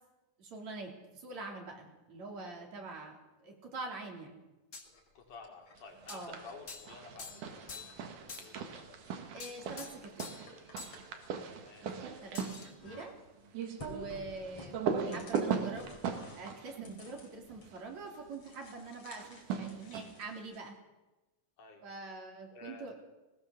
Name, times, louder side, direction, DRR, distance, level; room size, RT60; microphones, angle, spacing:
voice 1, 0.4-3.2 3.4-4.4 6.1-6.4 9.3-10.3 11.8-11.9 12.2-12.4 12.8-13.1 13.8-16.0 16.4-20.8 21.8-22.9, right 3 dB, 55° right, 2 dB, 4.5 m, -44 dB
sound 1, 4.7-4.9 6.1-6.3 6.7-6.9 7.2-8.0 8.3-8.6 9.4-10.5 10.8-11.0 12.3-12.7, left 4 dB, 30° left, 1.5 m, -47 dB
sound 2, 4.8-7.3 7.7-8.4 8.7-12.5 12.8-13.4 13.8-17.8 18.1-20.7, left 2 dB, 45° left, 4.4 m, -55 dB
voice 2, 5.1-8.7 11.5-11.9 13.9-14.1 21.6-21.8 22.5-22.9, left 4 dB, 70° left, 2 dB, 4.8 m, -52 dB
sound 3, 6.0-6.6 6.9-17.9 19.1-20.3, right 6 dB, 75° right, 3.4 m, -39 dB
20.0 x 19.5 x 7.1 m, 1.1 s
omnidirectional pair, 3.8 m